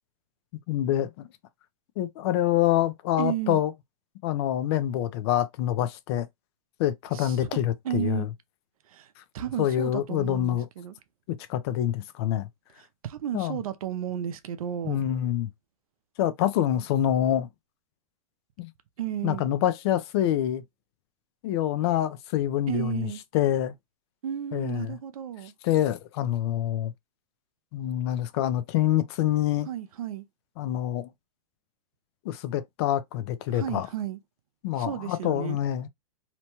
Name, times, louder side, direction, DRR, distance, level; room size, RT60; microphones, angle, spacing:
voice 1, 0.7-1.3 2.0-3.7 4.2-6.3 6.8-8.3 9.6-10.7 11.3-12.5 13.3-13.6 14.8-15.5 16.2-17.5 18.6-18.7 19.2-20.6 21.4-23.1 23.3-23.7 24.5-25.0 25.6-26.9 27.7-29.7 30.6-31.1 32.2-33.9 34.6-35.9, left 12 dB, 45° left, 0.5 m, -26 dB
voice 2, 3.2-3.6 7.1-7.6 7.8-8.3 8.9-10.9 12.8-15.0 19.0-19.5 22.7-23.2 24.2-25.5 29.7-30.3 33.5-34.2 34.8-35.6, right 10 dB, 75° right, 0.6 m, -33 dB
2.9 x 2.2 x 2.9 m
hypercardioid pair, 135°, 18 cm